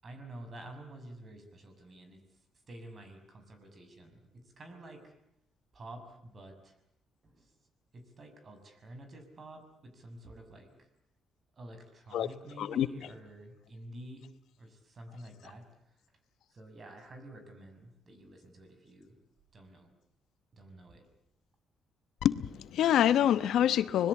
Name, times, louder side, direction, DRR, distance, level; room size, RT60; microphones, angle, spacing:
voice 1, 0.0-2.2 2.7-5.1 5.7-6.8 7.2-7.5 7.9-10.9 11.5-14.3 14.6-16.0 16.5-19.1 19.5-19.9 20.5-21.1, right 1 dB, 40° right, 7 dB, 6.3 m, -49 dB
voice 2, 22.2-24.1, left 10 dB, 75° left, 14 dB, 1.0 m, -26 dB
25.5 x 21.0 x 8.6 m, 0.75 s
cardioid pair, 90°, 0 cm